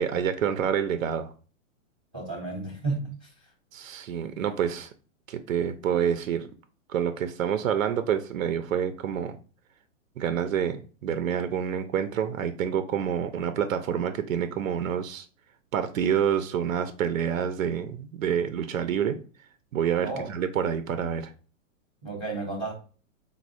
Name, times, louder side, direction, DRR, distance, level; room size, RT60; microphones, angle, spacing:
voice 1, 0.0-1.3 3.7-4.9 5.3-6.5 6.9-9.4 10.2-15.3 15.7-19.2 19.7-21.3, right 8 dB, 85° right, 0.7 m, -27 dB
voice 2, 2.1-3.4 20.0-20.3 22.0-22.7, right 3 dB, 5° right, 0.3 m, -32 dB
4.1 x 2.4 x 4.6 m
hypercardioid pair, 165°, 39 cm